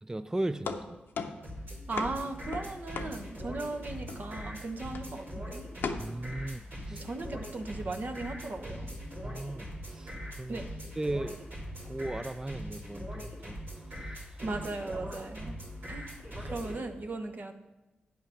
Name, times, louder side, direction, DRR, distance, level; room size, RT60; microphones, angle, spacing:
voice 1, 0.0-1.0 6.0-7.0 9.2-10.6 11.0-11.4 11.8-13.6 13.9-14.1 16.4-16.5, right 2 dB, 15° right, 12 dB, 0.3 m, -37 dB
sound 1, 0.6-3.7 4.1-4.5 4.9-5.3 5.8-6.0, left 5 dB, 80° left, 0.7 m, -38 dB
sound 2, 1.4-16.8, equal, 90° right, 2.5 m, -41 dB
voice 2, 1.9-5.7 6.9-8.9 10.5-10.7 14.4-15.6 15.9-16.1 16.4-17.5, right 3 dB, 55° right, 5 dB, 1.0 m, -37 dB
8.8 x 5.7 x 5.9 m, 1.0 s
cardioid pair, 50°, 4 cm